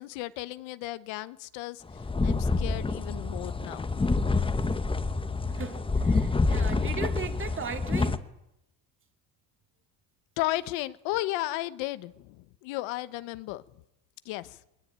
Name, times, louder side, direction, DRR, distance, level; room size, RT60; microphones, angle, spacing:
voice 1, 0.0-1.8 2.2-4.1 10.4-13.6 14.2-14.6, left 17 dB, 80° left, 1.2 m, -34 dB
sound 1, 1.9-8.2, left 3 dB, 10° left, 1.1 m, -27 dB
voice 2, 5.5-8.2, right 6 dB, 25° right, 2.4 m, -37 dB
21.5 x 20.5 x 8.9 m
cardioid pair, 130°, 45 cm